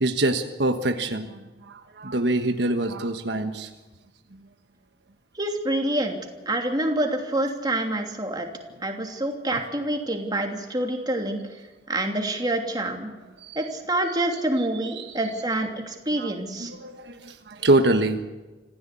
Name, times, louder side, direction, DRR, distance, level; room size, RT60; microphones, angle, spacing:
voice 1, 0.0-3.7 9.0-9.1 9.5-9.6 13.4-13.6 15.0-15.2 16.2-16.3 16.6-18.2, right 2 dB, 70° right, 6 dB, 1.4 m, -25 dB
voice 2, 5.3-6.2 6.5-8.5 8.8-11.4 11.9-13.1 13.5-16.7, right 1 dB, 25° right, 3 dB, 2.9 m, -27 dB
26.0 x 15.5 x 8.5 m, 1.2 s
head